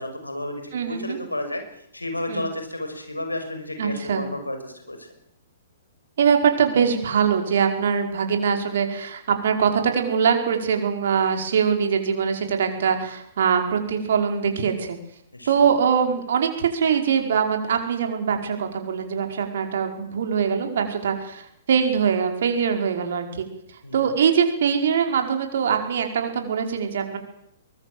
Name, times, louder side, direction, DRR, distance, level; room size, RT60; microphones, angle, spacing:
voice 1, 0.0-1.6 1.9-5.0 15.3-15.5 23.8-24.1, left 1 dB, 90° left, 7 dB, 5.9 m, -32 dB
voice 2, 0.7-1.2 2.3-2.5 3.8-4.3 6.2-15.0 15.5-23.5 23.9-27.2, right 7 dB, 60° right, 5 dB, 5.0 m, -22 dB
23.5 x 21.5 x 7.7 m, 0.75 s
figure-of-eight pair, 115°, 0 cm